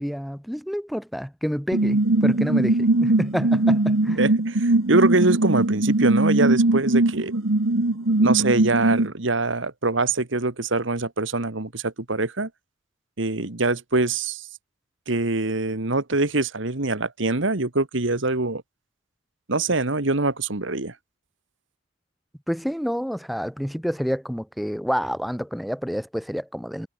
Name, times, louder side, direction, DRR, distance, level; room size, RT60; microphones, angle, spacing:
voice 1, 0.0-4.2 22.5-26.9, equal, ahead, 4.1 m, -28 dB
sound 1, 1.7-9.1, right 2 dB, 90° right, 1.5 m, -20 dB
voice 2, 4.2-7.3 8.2-12.5 13.2-14.5 15.1-18.6 19.5-20.9, right 3 dB, 65° right, 1.7 m, -24 dB
head